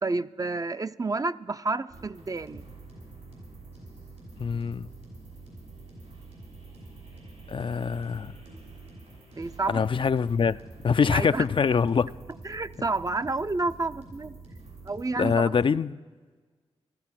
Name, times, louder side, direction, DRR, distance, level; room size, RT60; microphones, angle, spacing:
voice 1, 0.0-2.6 9.4-9.8 11.1-11.5 12.4-14.4 14.9-15.5, right 3 dB, 30° right, 0.5 m, -30 dB
sound 1, 1.9-15.1, right 3 dB, 80° right, 5.9 m, -46 dB
voice 2, 4.4-4.9 7.5-8.3 9.7-10.6 10.8-12.1 15.2-16.0, left 6 dB, 50° left, 0.4 m, -24 dB
14.5 x 13.0 x 5.9 m
supercardioid pair, 40°, 11 cm